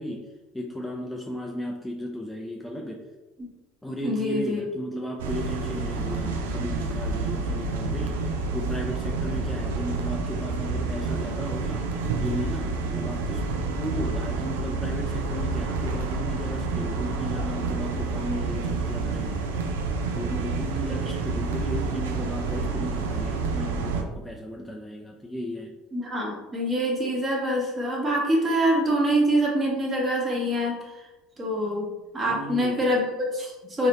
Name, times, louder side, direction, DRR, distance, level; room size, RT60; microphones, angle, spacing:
voice 1, 0.0-3.0 3.8-8.2 8.5-11.9 12.2-19.5 20.2-25.7 32.2-32.8, equal, 10° left, 0 dB, 0.5 m, -35 dB
voice 2, 4.0-4.6 25.9-31.0 31.4-33.9, equal, 30° right, -2 dB, 1.3 m, -25 dB
sound 1, 5.2-24.0, right 4 dB, 80° right, 0.4 m, -29 dB
3.8 x 2.6 x 3.0 m, 1.1 s
hypercardioid pair, 70°, 0 cm